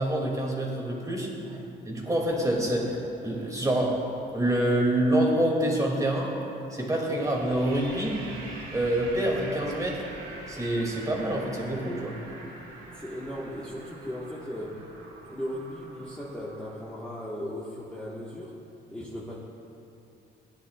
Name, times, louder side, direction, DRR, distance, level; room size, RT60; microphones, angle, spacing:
voice 1, 0.0-1.3 1.9-3.0 3.2-4.0 4.3-6.3 6.7-8.2 8.7-10.0 10.5-12.1, right 1 dB, 15° right, -2 dB, 2.3 m, -26 dB
sound 1, 2.2-5.0 7.1-16.8, right 2 dB, 90° right, 1.9 m, -45 dB
voice 2, 12.9-14.8 15.3-18.6 18.9-19.4, equal, 5° left, -7 dB, 1.4 m, -37 dB
16.0 x 10.0 x 2.4 m, 2.8 s
cardioid pair, 90°, 20 cm